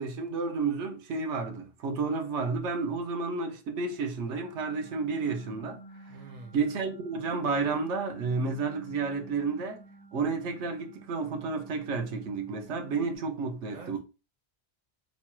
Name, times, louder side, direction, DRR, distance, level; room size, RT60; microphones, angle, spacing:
voice 1, 0.0-5.8 6.5-9.8 10.1-14.0, right 4 dB, 85° right, 1.1 m, -31 dB
sound 1, 4.3-13.2, right 1 dB, 20° left, 2.3 m, -51 dB
voice 2, 6.1-6.6 13.7-14.0, right 3 dB, 50° right, 0.6 m, -46 dB
4.2 x 3.1 x 2.2 m
omnidirectional pair, 1.2 m